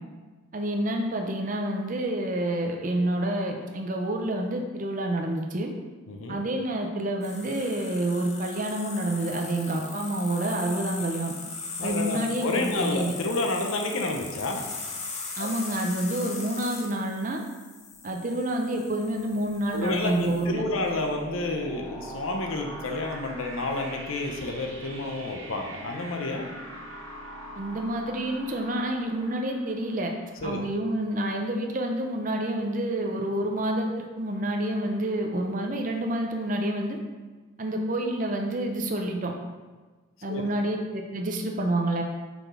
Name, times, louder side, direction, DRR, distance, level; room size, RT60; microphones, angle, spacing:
voice 1, 0.5-5.7 6.3-11.3 11.8-13.1 15.4-17.4 18.0-20.6 27.5-30.1 30.4-37.0 37.6-39.3 40.2-42.0, right 1 dB, 40° right, 2 dB, 0.6 m, -28 dB
voice 2, 6.1-6.4 11.8-14.6 15.4-15.5 19.7-26.5 30.4-30.6 40.3-40.4, left 2 dB, 80° left, 2 dB, 0.7 m, -30 dB
sound 1, 7.2-20.4, left 4 dB, 35° left, 0.8 m, -39 dB
sound 2, 19.1-30.8, right 1 dB, 80° right, 1.4 m, -43 dB
5.0 x 5.0 x 3.8 m, 1.3 s
head